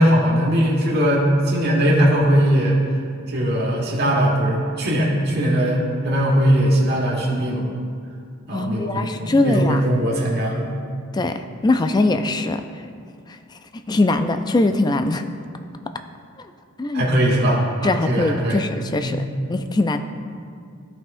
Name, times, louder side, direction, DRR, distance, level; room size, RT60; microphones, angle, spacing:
voice 1, 0.0-2.8 3.3-7.6 8.5-10.7 16.9-18.6 19.0-19.2, equal, 50° right, -3 dB, 1.5 m, -19 dB
voice 2, 8.5-9.8 11.1-12.6 13.7-15.2 16.8-17.1 17.8-20.0, left 2 dB, 20° left, 8 dB, 0.3 m, -21 dB
13.0 x 5.5 x 2.6 m, 2.3 s
head